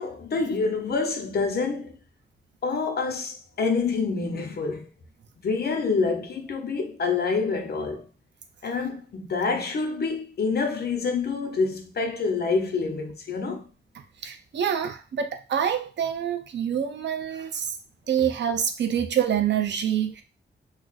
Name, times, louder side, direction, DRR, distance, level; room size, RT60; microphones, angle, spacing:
voice 1, 0.0-2.0 2.6-4.9 5.4-8.1 8.6-13.7, left 4 dB, 60° left, 0.6 m, -27 dB
voice 2, 14.2-17.7 18.1-20.2, right 9 dB, 75° right, 0.5 m, -26 dB
2.4 x 2.3 x 3.9 m
wide cardioid pair, 155°, 18 cm